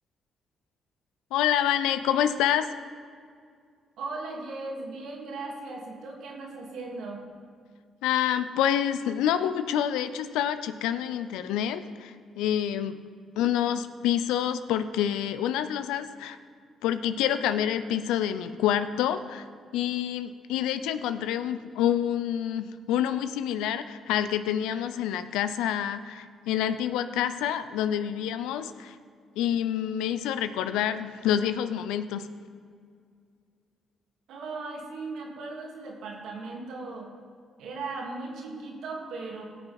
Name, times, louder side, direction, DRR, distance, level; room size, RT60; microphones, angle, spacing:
voice 1, 1.3-2.7 8.0-13.0 13.4-16.4 16.8-19.5 19.7-29.0 29.4-32.3, left 10 dB, 80° left, 12 dB, 0.5 m, -27 dB
voice 2, 4.0-7.2 34.3-37.1 37.6-39.4, right 3 dB, 75° right, 0 dB, 2.1 m, -37 dB
17.5 x 6.6 x 4.3 m, 2.1 s
hypercardioid pair, 50°, 0 cm